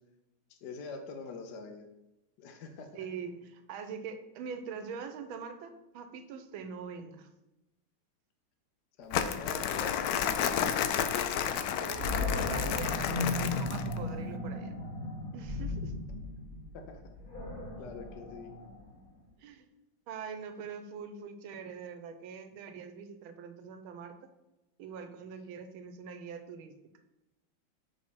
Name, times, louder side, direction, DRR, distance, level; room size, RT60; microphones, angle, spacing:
voice 1, 0.5-1.9 2.4-3.1 9.0-10.7 16.7-17.0 17.8-18.5, left 4 dB, 65° left, 5 dB, 1.3 m, -44 dB
voice 2, 2.9-7.3 11.5-14.7 15.3-15.9 19.4-19.7 20.1-24.2 24.8-26.8, right 6 dB, 90° right, 8 dB, 1.6 m, -43 dB
Crumpling crinkling, 9.1-14.0, left 8 dB, 85° left, 0.8 m, -31 dB
Animal, 11.9-19.0, left 2 dB, 45° left, 2.2 m, -36 dB
6.5 x 3.9 x 6.1 m, 0.93 s
omnidirectional pair, 2.2 m